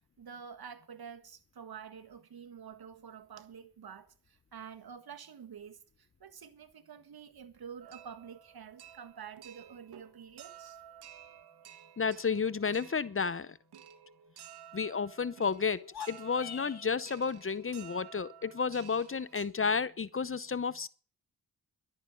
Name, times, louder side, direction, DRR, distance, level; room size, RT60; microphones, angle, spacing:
voice 1, 0.0-10.8, right 7 dB, 70° right, 1.7 m, -48 dB
sound 1, 7.8-19.4, right 9 dB, 85° right, 1.3 m, -53 dB
voice 2, 12.0-13.6 14.7-20.9, left 5 dB, 35° left, 0.8 m, -32 dB
sound 2, 15.8-17.0, left 9 dB, 75° left, 1.5 m, -44 dB
11.5 x 8.7 x 9.1 m
supercardioid pair, 45°, 38 cm